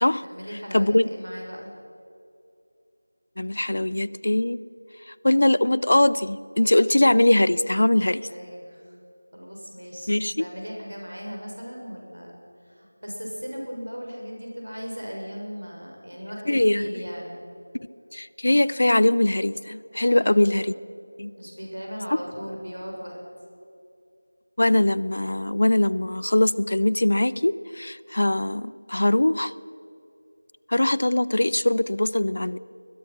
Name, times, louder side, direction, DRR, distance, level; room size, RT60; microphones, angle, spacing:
voice 1, 0.2-1.7 8.3-9.0 9.3-10.1 10.4-12.3 12.7-17.4 20.0-20.5 21.4-23.2, equal, 85° right, -1 dB, 6.8 m, -37 dB
voice 2, 3.4-4.6 5.2-8.3 10.1-10.3 16.5-16.9 18.1-20.7 21.2-21.3 24.6-29.5 30.7-32.6, left 1 dB, 55° left, 19 dB, 0.6 m, -21 dB
21.5 x 21.5 x 5.9 m, 2.6 s
figure-of-eight pair, 170°, 0 cm